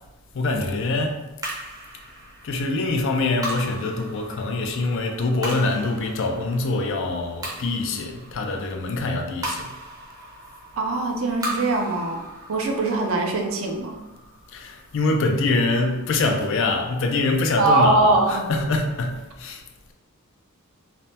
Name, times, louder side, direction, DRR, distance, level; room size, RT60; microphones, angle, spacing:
voice 1, 0.3-1.2 2.4-9.7 14.5-19.6, left 2 dB, 60° left, 0.4 m, -24 dB
sound 1, 1.4-15.9, right 1 dB, 15° right, 0.6 m, -38 dB
voice 2, 10.8-12.2 12.5-13.9 17.6-18.5, right 2 dB, 65° right, 0.4 m, -21 dB
3.3 x 2.0 x 2.7 m
head